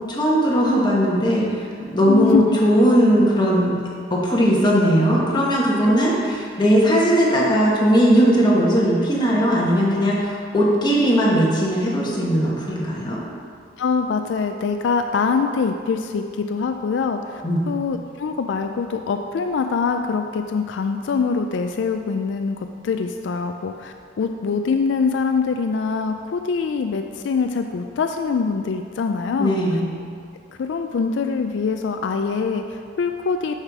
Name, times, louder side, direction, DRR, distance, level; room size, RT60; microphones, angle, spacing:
voice 1, 0.1-1.5 1.8-3.8 4.1-13.2 17.4-17.7 29.4-29.8, equal, 25° left, -5 dB, 1.3 m, -18 dB
voice 2, 2.1-2.4 5.8-5.9 13.8-29.6 30.6-33.5, left 5 dB, 80° left, 6 dB, 0.3 m, -24 dB
6.6 x 5.7 x 4.8 m, 2.2 s
head